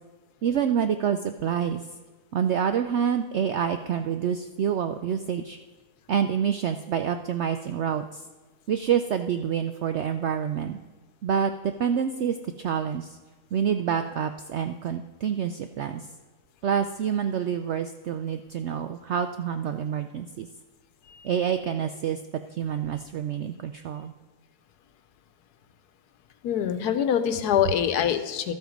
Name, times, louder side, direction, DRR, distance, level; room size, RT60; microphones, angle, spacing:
voice 1, 0.4-1.8 2.3-5.6 6.1-8.2 8.7-10.8 11.2-13.2 13.5-16.1 16.6-20.5 21.2-22.2 22.6-24.1, right 8 dB, 75° right, 9 dB, 0.6 m, -27 dB
voice 2, 26.4-28.5, left 9 dB, 80° left, 10 dB, 1.3 m, -25 dB
12.5 x 7.9 x 5.1 m, 1.3 s
omnidirectional pair, 1.7 m